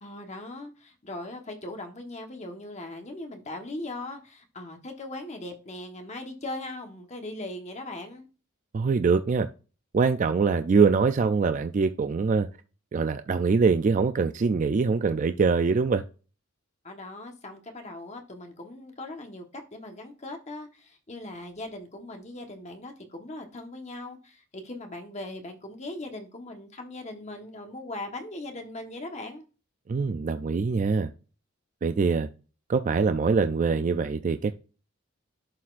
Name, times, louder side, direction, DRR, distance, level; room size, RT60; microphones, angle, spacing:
voice 1, 0.0-8.2 16.8-29.4, left 2 dB, 35° left, 1.2 m, -39 dB
voice 2, 8.7-9.5 9.9-12.5 12.9-16.0 29.9-31.1 31.8-32.3 32.7-34.5, right 4 dB, 35° right, 0.3 m, -23 dB
11.5 x 4.2 x 2.5 m
head